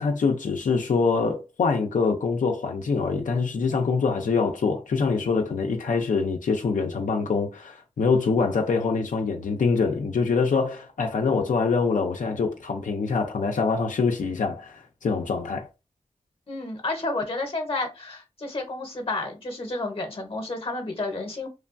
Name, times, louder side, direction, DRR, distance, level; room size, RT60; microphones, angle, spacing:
voice 1, 0.0-15.7, left 4 dB, 85° left, 0.4 m, -24 dB
voice 2, 16.5-21.5, left 2 dB, 45° left, 0.7 m, -31 dB
3.1 x 2.2 x 2.4 m
wide cardioid pair, 80°, 13 cm